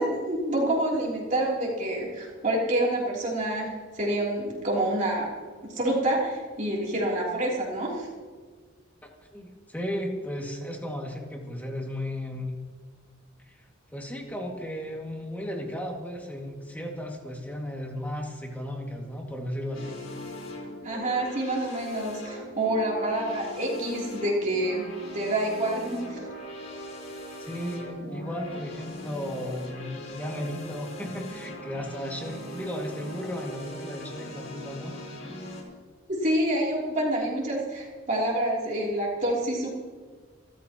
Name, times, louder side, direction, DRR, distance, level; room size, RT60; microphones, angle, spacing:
voice 1, 0.0-5.3 5.7-8.1 20.8-24.9 25.1-26.3 36.1-39.7, right 1 dB, 40° right, -4 dB, 3.4 m, -27 dB
voice 2, 9.0-12.6 13.4-13.6 13.9-20.0 27.4-34.9, equal, 10° left, 0 dB, 2.2 m, -35 dB
sound 1, 19.7-35.6, left 1 dB, 65° left, 4.4 m, -40 dB
29.5 x 13.5 x 3.0 m, 1.5 s
head